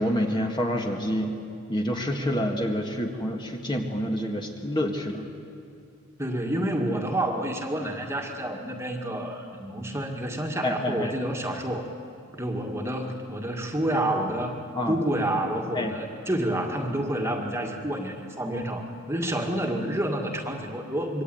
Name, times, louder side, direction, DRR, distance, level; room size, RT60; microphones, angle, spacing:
voice 1, 0.0-1.4 1.7-5.2 10.6-11.1 14.8-15.0 15.7-15.9, equal, 20° left, 2 dB, 1.9 m, -27 dB
voice 2, 6.2-11.9 12.3-14.6 14.9-21.2, right 1 dB, 15° right, 2 dB, 2.0 m, -29 dB
26.5 x 23.5 x 9.4 m, 2.4 s
head